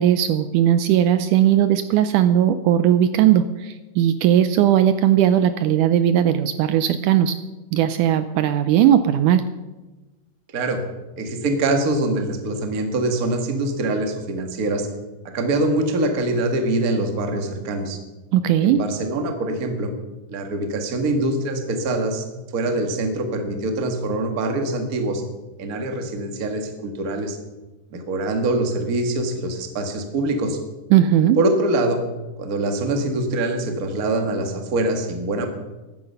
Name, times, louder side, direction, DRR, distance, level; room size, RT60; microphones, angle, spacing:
voice 1, 0.0-7.3 7.7-9.4 18.3-18.8 30.9-31.4, right 10 dB, 80° right, 11 dB, 2.0 m, -18 dB
voice 2, 11.2-14.9 15.3-18.0 18.6-19.9 20.3-22.2 22.5-25.2 25.6-27.4 27.9-30.6 31.4-32.0 32.4-35.5, right 2 dB, 40° right, 5 dB, 1.4 m, -24 dB
14.5 x 12.5 x 5.6 m, 1.1 s
omnidirectional pair, 3.8 m